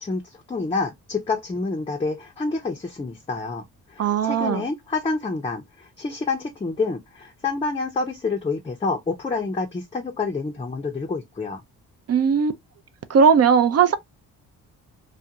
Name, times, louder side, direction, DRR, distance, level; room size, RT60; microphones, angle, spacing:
voice 1, 0.0-11.6, left 3 dB, 15° left, 0.5 m, -28 dB
voice 2, 4.0-4.6 12.1-12.5 13.1-14.0, right 6 dB, 40° right, 0.5 m, -18 dB
2.4 x 2.2 x 2.7 m
supercardioid pair, 65°, 38 cm